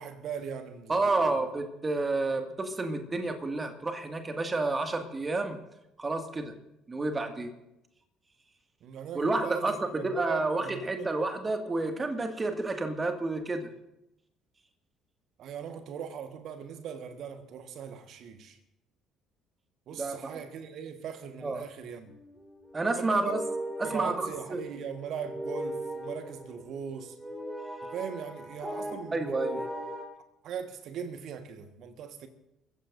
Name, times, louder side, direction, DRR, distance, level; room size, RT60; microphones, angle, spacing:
voice 1, 0.0-1.4 8.8-11.1 15.4-18.6 19.9-22.1 23.0-23.4 23.8-27.1 27.9-29.7 30.4-32.3, right 7 dB, 50° right, 1.4 m, -39 dB
voice 2, 0.9-5.6 6.0-6.5 6.9-7.5 9.1-13.7 19.9-20.4 21.4-21.6 22.7-23.4 23.9-24.6 29.1-29.6, right 2 dB, 25° right, 2.1 m, -30 dB
sound 1, 22.0-30.0, right 1 dB, 5° right, 4.4 m, -39 dB
29.5 x 15.0 x 2.6 m
figure-of-eight pair, 50°, 0 cm